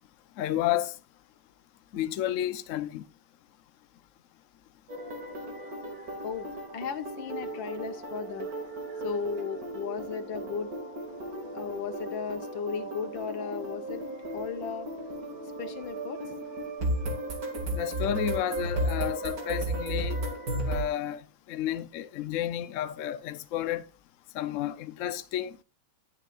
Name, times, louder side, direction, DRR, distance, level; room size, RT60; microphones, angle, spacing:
voice 1, 0.4-1.0 1.9-3.0 17.8-20.2 20.6-21.2 21.5-23.8 24.3-25.5, left 11 dB, 90° left, 0.6 m, -31 dB
sound 1, 4.9-20.8, right 1 dB, 45° right, 2.6 m, -35 dB
voice 2, 6.2-8.5 9.0-10.7 11.5-14.0 14.3-14.9 15.6-16.2, left 6 dB, 70° left, 1.6 m, -35 dB
18.5 x 7.1 x 2.4 m
omnidirectional pair, 2.3 m